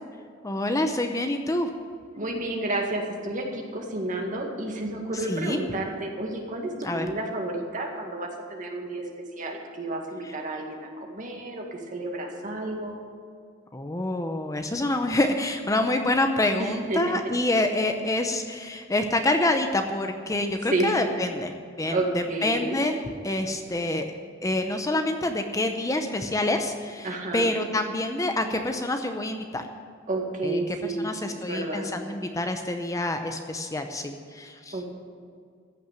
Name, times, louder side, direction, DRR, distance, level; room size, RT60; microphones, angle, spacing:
voice 1, 0.4-1.7 5.1-5.6 6.8-7.1 10.2-10.3 13.7-23.0 23.2-24.1 24.4-29.6 30.4-34.8, left 1 dB, 15° left, 6 dB, 0.7 m, -27 dB
voice 2, 2.2-9.0 9.4-13.0 16.6-17.2 20.7-21.0 21.9-22.8 27.0-27.5 30.1-31.9 34.7-34.8, right 2 dB, 40° right, 1 dB, 2.0 m, -31 dB
15.0 x 6.0 x 9.1 m, 2.1 s
head